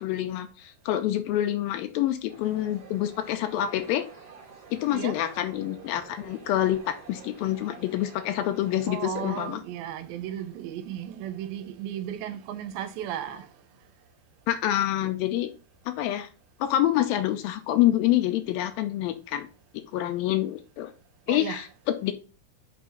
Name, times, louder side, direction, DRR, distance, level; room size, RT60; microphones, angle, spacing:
voice 1, 0.0-4.1 4.7-9.6 14.5-15.5 15.9-16.3 16.6-19.5 19.9-20.9 21.3-22.1, left 13 dB, 80° left, 2.5 m, -27 dB
sound 1, 2.3-9.1, right 5 dB, 45° right, 1.5 m, -48 dB
voice 2, 8.9-13.5 21.3-21.6, right 10 dB, 90° right, 2.6 m, -35 dB
6.0 x 4.7 x 5.5 m
omnidirectional pair, 4.2 m